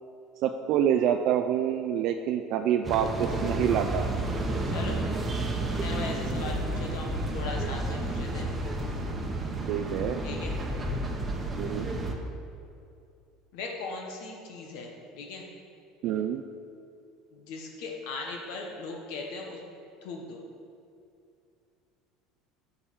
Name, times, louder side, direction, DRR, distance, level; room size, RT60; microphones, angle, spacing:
voice 1, 0.4-4.1 9.7-10.2 11.6-11.9 16.0-16.4, right 9 dB, 60° right, 5 dB, 0.4 m, -27 dB
sound 1, 2.8-12.2, right 1 dB, 20° right, 1.0 m, -31 dB
voice 2, 5.6-8.5 10.2-10.5 13.5-15.4 17.3-19.6 20.0-20.4, left 3 dB, 75° left, 1 dB, 1.2 m, -38 dB
7.0 x 5.4 x 7.1 m, 2.5 s
supercardioid pair, 120°, 0 cm